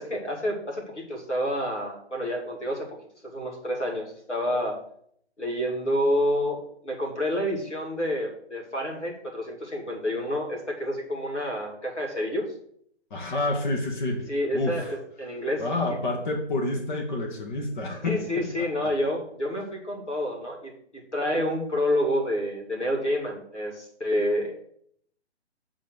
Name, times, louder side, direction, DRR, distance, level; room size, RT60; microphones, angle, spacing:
voice 1, 0.0-3.0 3.2-4.8 5.4-12.4 14.3-15.6 18.0-24.5, equal, 90° left, 0 dB, 2.7 m, -28 dB
voice 2, 13.1-14.9 15.6-18.9, left 2 dB, 45° left, 2 dB, 1.8 m, -29 dB
9.1 x 4.2 x 6.4 m, 0.67 s
figure-of-eight pair, 135°, 34 cm